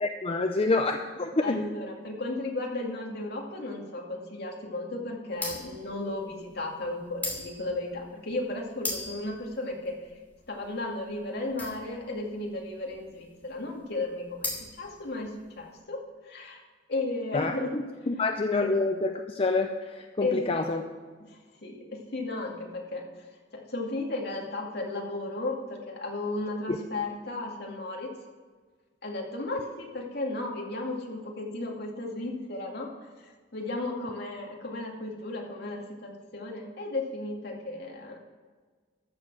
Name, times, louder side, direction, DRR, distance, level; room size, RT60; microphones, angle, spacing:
voice 1, 0.0-1.6 17.3-17.5 18.1-20.8 26.7-26.8, left 3 dB, 30° left, 5 dB, 0.5 m, -27 dB
voice 2, 1.4-10.0 10.5-16.6 16.9-17.7 18.6-18.7 20.2-20.7 21.2-23.1 23.5-28.1 29.0-33.1 33.5-38.2, left 2 dB, 60° left, 0 dB, 2.3 m, -34 dB
sound 1, 5.3-15.7, left 2 dB, 10° left, 2.7 m, -39 dB
13.5 x 6.9 x 6.1 m, 1.5 s
head